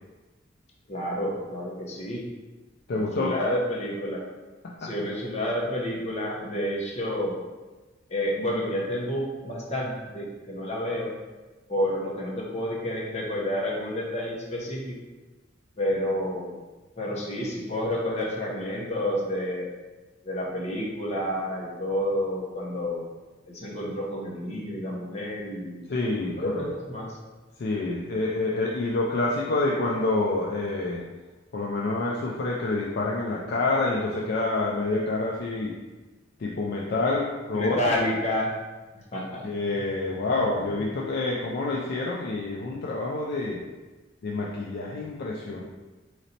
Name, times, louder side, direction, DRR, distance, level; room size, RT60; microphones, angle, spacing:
voice 1, 0.9-2.3 2.9-4.3 4.8-7.4 8.1-11.1 11.7-15.0 15.8-16.5 17.0-19.7 20.2-23.1 23.5-25.8 26.1-27.2 37.5-38.6 39.1-39.5 40.3-40.8, left 1 dB, 35° left, -4 dB, 0.8 m, -30 dB
voice 2, 2.9-3.4 4.6-4.9 25.9-26.7 27.6-31.0 31.5-35.7 36.4-37.8 39.4-43.6 44.2-45.6, left 2 dB, 55° left, -3 dB, 0.4 m, -27 dB
3.9 x 3.1 x 2.8 m, 1.2 s
head